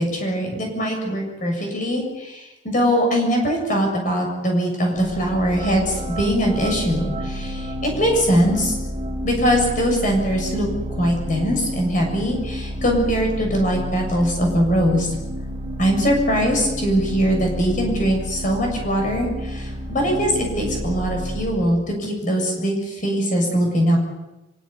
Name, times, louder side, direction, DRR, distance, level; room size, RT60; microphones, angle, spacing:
voice 1, 0.0-8.8 9.2-10.7 11.0-15.1 15.8-24.0, equal, 45° left, 1 dB, 7.2 m, -21 dB
sound 1, 5.0-21.4, equal, 25° right, 4.5 m, -30 dB
28.0 x 16.5 x 9.8 m, 1.0 s
head